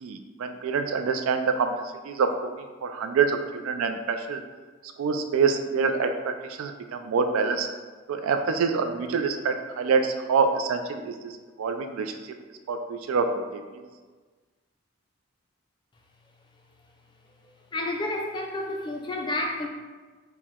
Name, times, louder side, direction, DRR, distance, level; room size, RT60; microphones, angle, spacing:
voice 1, 0.0-1.7 2.0-4.4 5.0-7.7 8.1-12.4 12.7-13.8, right 5 dB, 75° right, 7 dB, 0.3 m, -26 dB
voice 2, 17.7-19.7, left 1 dB, 20° left, 1 dB, 0.3 m, -30 dB
4.5 x 2.1 x 3.6 m, 1.4 s
head